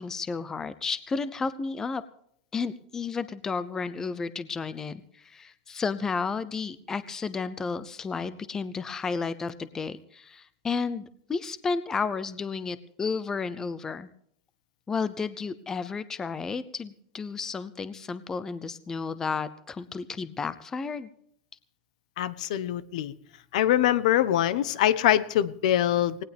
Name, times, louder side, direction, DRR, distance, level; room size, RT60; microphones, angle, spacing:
voice 1, 0.0-2.0 2.5-14.1 14.9-21.1, left 5 dB, 15° left, 15 dB, 0.6 m, -32 dB
voice 2, 22.2-23.1 23.5-26.2, left 12 dB, 70° left, 16 dB, 1.0 m, -23 dB
18.5 x 18.5 x 3.5 m, 0.67 s
supercardioid pair, 160°, 4 cm